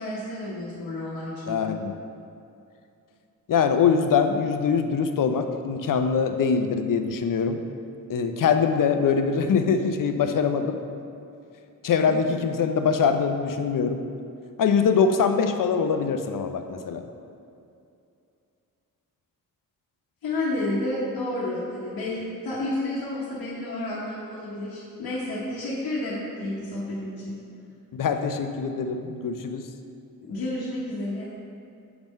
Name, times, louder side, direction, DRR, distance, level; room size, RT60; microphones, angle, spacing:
voice 1, 0.0-1.8 12.1-12.2 20.2-27.4 30.2-31.3, left 1 dB, 80° left, -8 dB, 1.1 m, -31 dB
voice 2, 1.5-1.9 3.5-7.6 8.1-10.8 11.8-14.0 14.6-17.0 27.9-29.7, left 6 dB, 60° left, 7 dB, 0.6 m, -23 dB
5.9 x 3.6 x 5.2 m, 2.6 s
cardioid pair, 50°, 36 cm